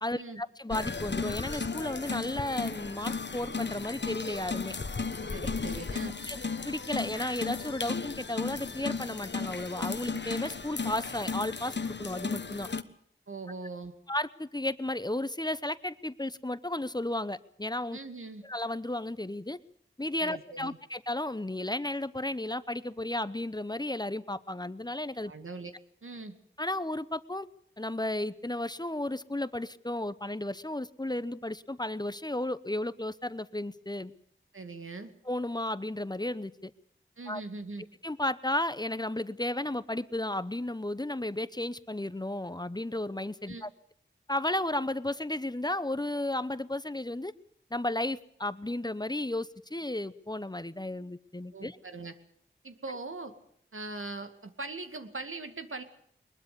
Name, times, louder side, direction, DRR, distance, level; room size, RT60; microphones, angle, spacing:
voice 1, 0.0-4.7 6.3-12.7 14.1-18.0 18.4-19.6 20.0-25.3 26.6-27.5 27.8-34.1 35.2-36.7 37.3-37.4 38.0-43.7 44.3-47.3 47.7-51.8, left 1 dB, 20° left, 15 dB, 0.8 m, -33 dB
sound 1, 0.7-12.8, left 4 dB, 60° left, 1.2 m, -35 dB
voice 2, 5.3-6.1 13.3-13.9 17.9-18.4 20.2-20.8 25.2-25.7 26.0-26.4 34.5-35.1 37.2-37.8 43.5-43.6 51.5-52.1 52.6-53.3 53.7-55.8, right 3 dB, 85° right, 7 dB, 2.3 m, -41 dB
22.0 x 21.0 x 6.9 m, 0.65 s
wide cardioid pair, 65°, 21 cm